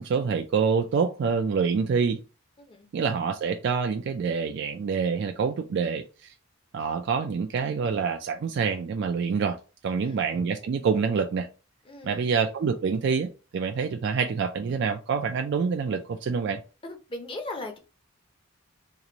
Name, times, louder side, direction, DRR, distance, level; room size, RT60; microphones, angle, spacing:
voice 1, 0.0-2.2 2.9-6.3 6.7-9.6 9.8-11.5 12.0-16.6, right 5 dB, 55° right, 0.3 m, -26 dB
voice 2, 2.6-2.9 9.9-10.2 11.9-12.3 16.8-17.8, left 2 dB, 25° left, 0.6 m, -38 dB
3.0 x 2.5 x 3.9 m
head